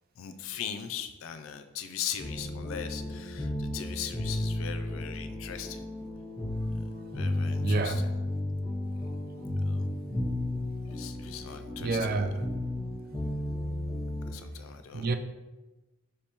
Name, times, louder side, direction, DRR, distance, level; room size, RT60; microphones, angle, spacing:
voice 1, 0.2-5.9 6.8-6.9 7.1-8.1 9.0-9.1 9.6-9.8 10.9-12.3 14.3-15.1, left 9 dB, 70° left, 0.3 m, -40 dB
sound 1, 2.2-14.3, left 1 dB, 5° left, 1.2 m, -33 dB
voice 2, 7.6-8.0 11.8-12.4 14.9-15.2, right 3 dB, 45° right, 0.4 m, -28 dB
5.2 x 3.4 x 2.8 m
head